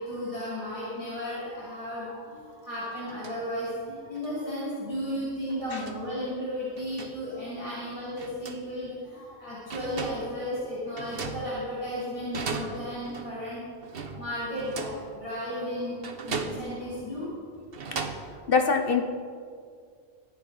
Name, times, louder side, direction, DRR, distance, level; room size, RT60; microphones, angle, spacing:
voice 1, 0.0-13.6 13.9-17.3, equal, 30° left, -10 dB, 3.7 m, -34 dB
sound 1, 2.4-2.5 2.9-3.3 4.1-4.3 5.5-6.1 6.8-7.2 8.2-8.7 9.3-9.4 9.7-10.4 11.0-11.9 12.3-13.4 13.8-15.1 16.0-16.9 17.5-18.3, right 4 dB, 65° right, 1.2 m, -37 dB
voice 2, 18.5-19.0, left 5 dB, 60° left, 5 dB, 1.0 m, -23 dB
24.5 x 8.7 x 4.0 m, 2.2 s
omnidirectional pair, 1.1 m